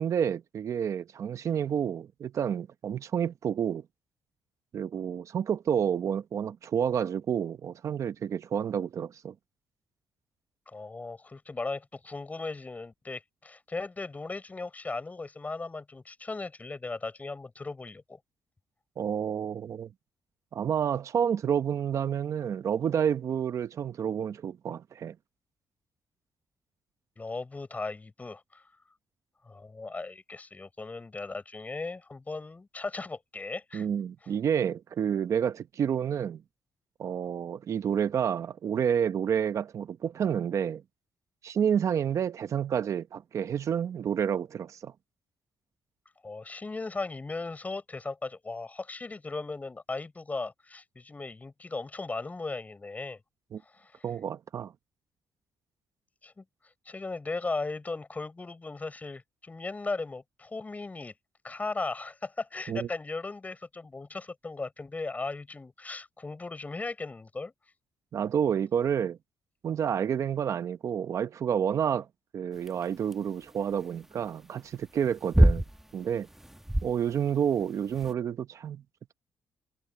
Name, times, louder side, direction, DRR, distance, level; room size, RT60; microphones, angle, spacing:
voice 1, 0.0-3.8 4.7-9.3 19.0-19.9 20.5-25.1 33.7-36.4 37.0-40.8 41.4-44.9 53.5-53.6 54.0-54.7 62.7-62.9 68.1-69.2 69.6-72.1 72.3-75.6 75.9-76.3 76.8-78.8, right 8 dB, 60° right, 0.9 m, -29 dB
voice 2, 10.7-18.2 27.2-28.6 29.4-33.9 46.2-53.2 53.7-54.1 56.2-56.4 56.8-61.1 61.4-67.5, left 3 dB, 25° left, 6.5 m, -37 dB
sound 1, 72.6-78.1, right 1 dB, 5° right, 1.2 m, -27 dB
cardioid pair, 75°, 6 cm